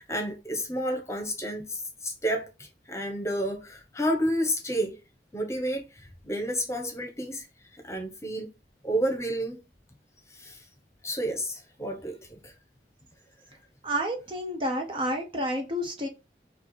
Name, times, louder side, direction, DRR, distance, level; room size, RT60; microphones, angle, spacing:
voice 1, 0.0-2.5 2.9-5.0 5.3-5.8 6.2-7.5 7.8-8.5 8.8-9.6 10.3-10.6 11.0-12.5, equal, 15° left, 1.0 m, -30 dB
voice 2, 13.8-16.1, equal, 30° right, 0.7 m, -30 dB
4.4 x 2.4 x 4.4 m
head